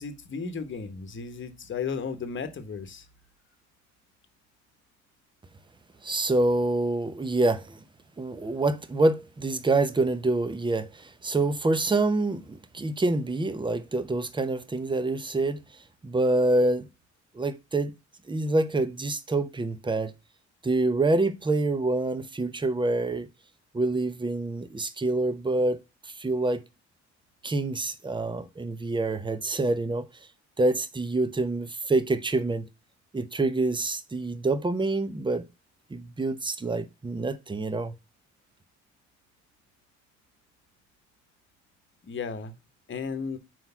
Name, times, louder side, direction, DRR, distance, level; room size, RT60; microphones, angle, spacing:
voice 1, 0.0-3.1 42.0-42.6 42.9-43.4, left 5 dB, 40° left, 1.1 m, -34 dB
voice 2, 6.0-7.8 8.2-15.6 16.0-16.9 17.3-17.9 18.3-20.1 20.6-23.3 23.7-26.6 27.4-30.1 30.6-32.7 33.1-35.4 35.9-37.9, right 2 dB, 15° right, 0.7 m, -26 dB
4.6 x 3.9 x 5.6 m
cardioid pair, 90°, 30 cm